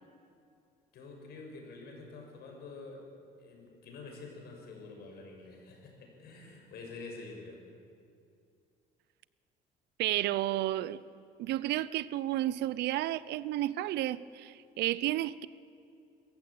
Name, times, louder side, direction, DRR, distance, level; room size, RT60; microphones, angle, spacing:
voice 1, 0.9-3.0 3.4-7.6, left 3 dB, 70° left, 6.7 m, -47 dB
voice 2, 10.0-11.0 11.4-15.5, right 14 dB, 80° right, 0.7 m, -32 dB
26.0 x 15.0 x 8.7 m
cardioid pair, 110°, 17 cm